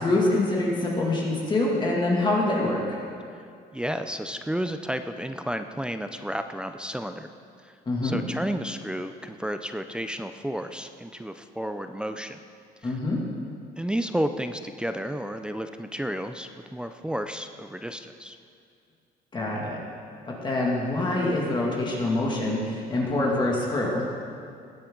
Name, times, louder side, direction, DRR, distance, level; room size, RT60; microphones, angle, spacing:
voice 1, 0.0-3.0 7.9-8.2 12.8-13.2 19.3-19.8 20.3-24.0, left 2 dB, 25° left, -3 dB, 2.4 m, -25 dB
voice 2, 3.7-7.3 7.6-7.7 8.0-12.4 12.8-13.0 13.8-18.4, equal, 5° right, 7 dB, 0.5 m, -32 dB
18.5 x 10.5 x 3.9 m, 2.3 s
cardioid pair, 110°, 17 cm